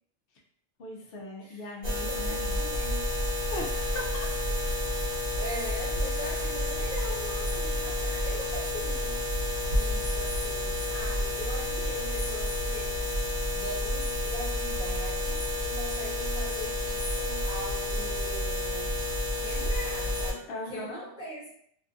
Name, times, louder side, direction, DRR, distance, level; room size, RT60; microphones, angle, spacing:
voice 1, 0.8-2.6 3.5-4.0 20.5-21.0, left 1 dB, 60° left, 0 dB, 0.7 m, -39 dB
voice 2, 1.4-3.1 5.4-9.2 9.8-13.2 13.5-18.9 19.3-21.5, equal, 5° right, -9 dB, 0.5 m, -41 dB
sound 1, 1.8-20.3, left 1 dB, 45° right, 0.8 m, -30 dB
2.5 x 2.3 x 2.5 m, 0.68 s
omnidirectional pair, 1.2 m